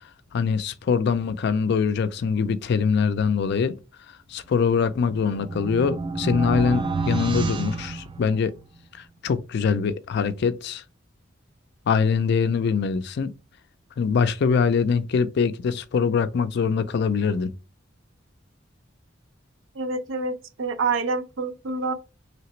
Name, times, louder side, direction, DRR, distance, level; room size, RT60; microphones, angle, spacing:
voice 1, 0.3-3.8 4.3-8.5 9.2-10.8 11.9-13.3 14.0-17.5, left 5 dB, 60° left, 0.4 m, -23 dB
sound 1, 4.9-8.7, right 3 dB, 25° right, 0.3 m, -29 dB
voice 2, 19.7-21.9, right 4 dB, 90° right, 0.6 m, -27 dB
3.2 x 2.9 x 3.0 m
head